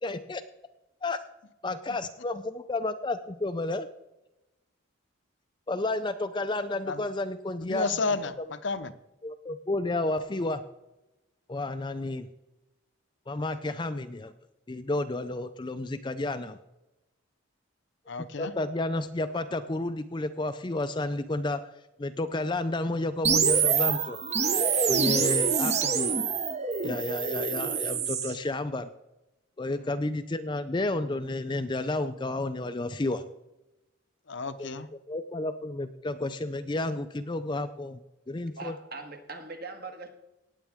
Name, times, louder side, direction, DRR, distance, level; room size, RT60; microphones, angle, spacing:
voice 1, 0.0-0.4 1.0-1.2 1.6-3.9 5.7-7.8 9.2-10.6 11.5-12.3 13.3-14.3 14.7-16.6 18.4-21.7 22.0-24.2 24.9-26.2 26.8-28.9 29.6-33.3 34.6-34.8 35.1-38.0 38.3-38.7, left 2 dB, 20° left, 10 dB, 0.4 m, -31 dB
voice 2, 7.6-8.9 18.1-18.5 29.8-29.9 34.3-34.9, left 4 dB, 60° left, 12 dB, 0.7 m, -32 dB
sound 1, 23.2-28.3, right 6 dB, 30° right, 0.8 m, -26 dB
voice 3, 38.6-40.1, right 3 dB, 50° right, 5 dB, 1.6 m, -41 dB
18.0 x 8.4 x 3.5 m, 0.96 s
head